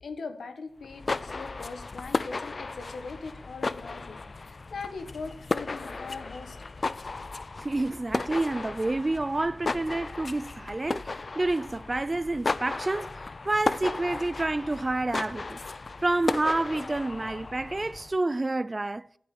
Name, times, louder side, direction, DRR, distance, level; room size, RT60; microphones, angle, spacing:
voice 1, 0.0-6.6, left 4 dB, 80° left, 1.6 m, -40 dB
sound 1, 0.8-18.2, left 3 dB, 45° left, 0.4 m, -35 dB
voice 2, 7.6-15.6 16.0-19.1, right 2 dB, 25° right, 0.4 m, -29 dB
12.5 x 8.0 x 6.1 m
wide cardioid pair, 80°, 0 cm